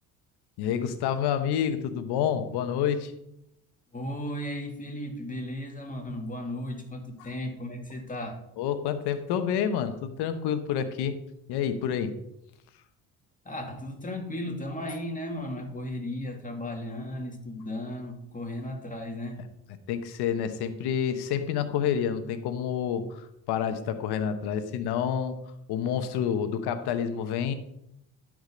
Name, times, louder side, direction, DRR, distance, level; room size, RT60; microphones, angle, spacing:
voice 1, 0.6-3.1 8.6-11.2 11.5-12.2 19.9-25.4 25.7-27.5, left 8 dB, 80° left, 10 dB, 1.1 m, -28 dB
voice 2, 3.9-8.4 13.4-19.4, left 1 dB, 20° left, 2 dB, 2.5 m, -35 dB
11.5 x 5.1 x 5.2 m, 0.81 s
supercardioid pair, 70°, 39 cm